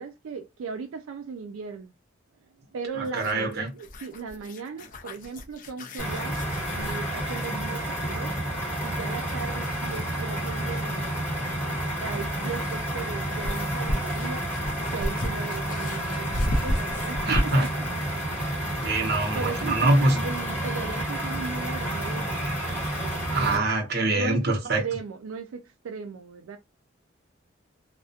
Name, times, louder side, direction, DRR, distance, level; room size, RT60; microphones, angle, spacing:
voice 1, 0.0-1.9 2.7-6.4 6.7-8.3 8.8-11.1 12.0-14.4 14.9-17.7 19.3-22.6 23.0-23.6 24.0-26.6, right 5 dB, 90° right, 0.4 m, -37 dB
sound 1, 3.0-7.6 9.9-10.0 12.0-17.8, equal, 40° left, 0.4 m, -33 dB
voice 2, 3.0-3.7 17.3-17.7 18.8-20.3 23.3-24.8, right 2 dB, 50° right, 0.8 m, -24 dB
sound 2, 6.0-23.6, right 1 dB, 10° left, 1.2 m, -30 dB
2.4 x 2.1 x 2.6 m
head